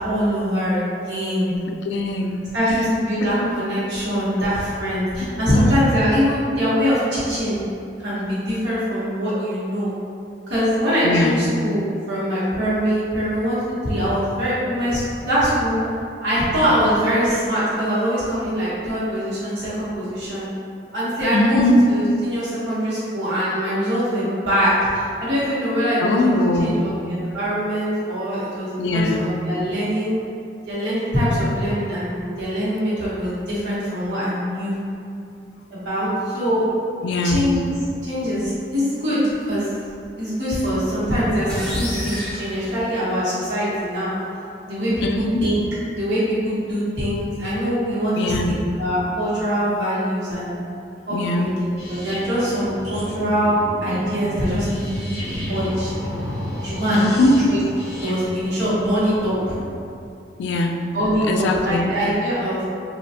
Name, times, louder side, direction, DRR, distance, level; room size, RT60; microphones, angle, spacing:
voice 1, 0.0-1.5 2.5-7.6 8.0-9.9 10.5-11.8 12.1-15.8 16.2-20.5 20.9-21.6 21.9-26.3 26.6-30.2 30.7-34.8 35.7-36.6 37.2-39.7 40.2-44.1 44.6-45.6 45.9-48.4 48.8-50.6 51.1-55.1 55.3-56.0 56.6-57.0 57.4-57.6 58.0-59.4 60.9-62.7, equal, 90° right, -10 dB, 1.1 m, -23 dB
voice 2, 1.8-2.5 3.2-3.3 5.5-5.8 11.0-11.4 21.3-21.8 26.0-27.0 28.8-29.3 37.0-37.6 45.0-45.4 48.2-48.6 51.1-51.5 56.9-57.4 60.4-60.8 61.3-62.0, left 2 dB, 80° left, 3 dB, 0.3 m, -21 dB
sound 1, 41.5-43.4, equal, 5° left, 1.0 m, -32 dB
sound 2, 51.8-59.6, equal, 40° right, 0.8 m, -32 dB
3.1 x 2.4 x 2.7 m, 2.5 s
head